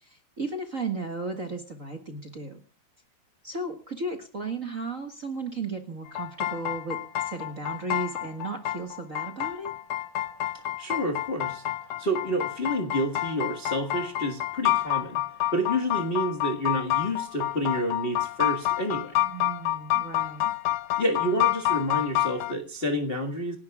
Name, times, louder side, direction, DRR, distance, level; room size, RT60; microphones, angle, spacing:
voice 1, 0.0-2.6 3.4-9.7 19.2-20.5, right 3 dB, 35° right, 4 dB, 1.6 m, -35 dB
sound 1, 6.1-22.5, left 14 dB, 90° left, 2.4 m, -28 dB
voice 2, 10.8-11.6 12.0-15.2 15.5-19.2 21.0-23.6, equal, 25° left, 3 dB, 1.3 m, -29 dB
28.0 x 11.5 x 2.3 m, 0.34 s
omnidirectional pair, 3.4 m